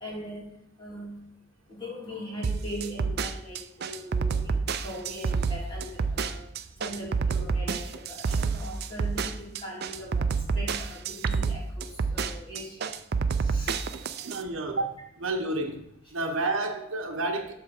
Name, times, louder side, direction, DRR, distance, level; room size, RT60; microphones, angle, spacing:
voice 1, 0.0-0.5 0.8-1.2 1.7-6.4 6.8-10.3 10.5-12.9 13.4-14.1, equal, 25° left, -5 dB, 2.5 m, -40 dB
sound 1, 2.4-14.4, right 5 dB, 50° right, 0.4 m, -28 dB
voice 2, 14.2-15.8 16.1-17.6, right 2 dB, 70° right, 2 dB, 0.9 m, -30 dB
7.8 x 3.4 x 6.4 m, 0.76 s
head